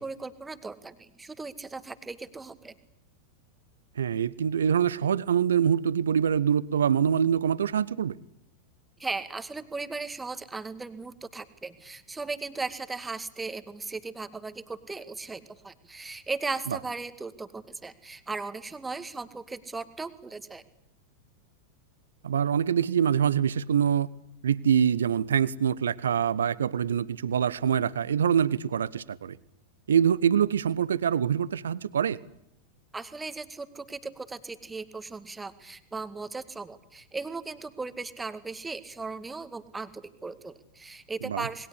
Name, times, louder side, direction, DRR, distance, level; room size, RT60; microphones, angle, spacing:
voice 1, 0.0-2.7 9.0-20.6 32.9-41.7, right 3 dB, 10° right, 10 dB, 2.0 m, -37 dB
voice 2, 4.0-8.2 16.7-16.8 22.2-24.1 24.4-29.4 29.9-32.2 41.2-41.5, right 8 dB, 65° right, 18 dB, 1.1 m, -25 dB
27.5 x 21.5 x 8.4 m, 0.76 s
figure-of-eight pair, 90°, 0 cm